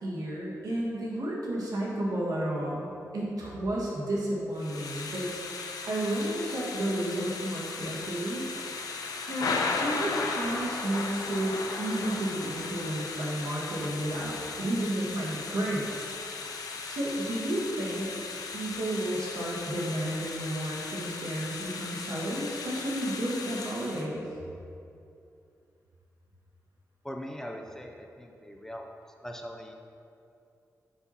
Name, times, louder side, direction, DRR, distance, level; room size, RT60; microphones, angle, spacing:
voice 1, 0.0-2.9 3.1-5.3 5.9-8.4 9.3-16.1 16.9-18.1 18.5-24.2, right 1 dB, 75° right, -5 dB, 1.5 m, -32 dB
Thunder / Rain, 4.6-24.0, left 4 dB, 85° left, 0.6 m, -36 dB
voice 2, 27.0-28.9 29.2-29.7, equal, 10° left, 2 dB, 0.4 m, -41 dB
5.8 x 5.6 x 4.1 m, 2.6 s
wide cardioid pair, 140°, 6 cm